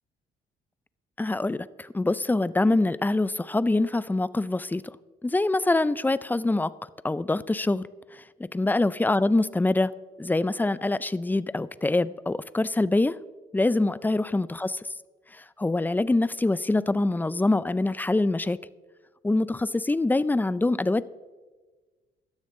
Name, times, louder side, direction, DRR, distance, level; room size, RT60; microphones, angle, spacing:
voice 1, 1.2-4.9 5.2-6.7 7.0-7.8 8.1-8.2 8.5-9.9 10.2-13.2 13.5-14.7 15.3-18.6 19.2-21.1, left 2 dB, 10° left, 17 dB, 0.4 m, -24 dB
16.0 x 12.5 x 3.7 m, 1.3 s
cardioid pair, 90°, 20 cm